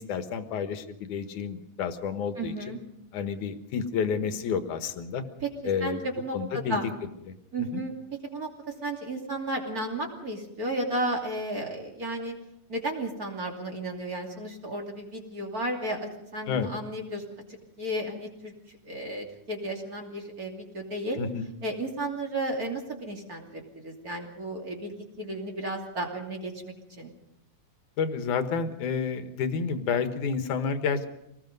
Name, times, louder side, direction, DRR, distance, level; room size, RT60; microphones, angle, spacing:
voice 1, 0.0-2.7 3.1-5.2 5.6-6.1 6.3-6.8 7.6-7.8 16.5-16.7 21.2-21.5 28.0-31.1, left 6 dB, 70° left, 9 dB, 2.6 m, -30 dB
voice 2, 2.4-2.8 5.4-5.5 5.8-6.8 7.5-7.9 8.2-12.3 12.7-17.2 17.5-18.5 18.8-21.2 21.6-27.1, right 1 dB, 30° right, 1 dB, 2.9 m, -33 dB
25.5 x 19.5 x 5.3 m, 0.80 s
omnidirectional pair, 3.9 m